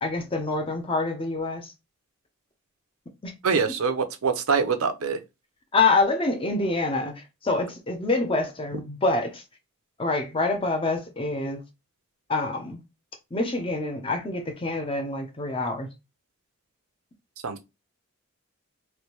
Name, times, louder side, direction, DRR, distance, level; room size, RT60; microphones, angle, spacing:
voice 1, 0.0-1.7 3.2-3.3 3.7-3.8 5.7-9.4 10.0-11.6 12.3-12.8 13.3-15.9, left 3 dB, 25° left, 0.6 m, -26 dB
voice 2, 3.4-5.2 17.4-17.6, right 5 dB, 80° right, 0.6 m, -24 dB
3.2 x 2.6 x 3.0 m
head